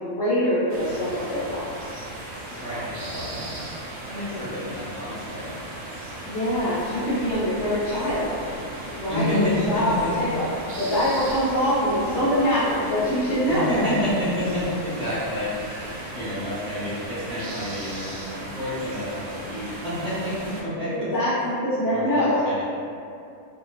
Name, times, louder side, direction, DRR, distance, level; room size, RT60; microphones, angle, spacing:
voice 1, 0.0-2.0 4.3-4.5 6.3-8.4 8.9-13.9 21.1-22.5, equal, 65° left, -9 dB, 0.7 m, -24 dB
sound 1, 0.7-20.6, right 1 dB, 85° right, 1.1 m, -37 dB
voice 2, 2.5-3.6 4.1-5.5 9.1-10.1 13.5-21.1 21.9-22.6, left 1 dB, 5° left, -14 dB, 0.6 m, -29 dB
sound 2, 6.5-16.0, equal, 60° right, 0.7 m, -44 dB
2.5 x 2.1 x 2.2 m, 2.4 s
omnidirectional pair, 1.5 m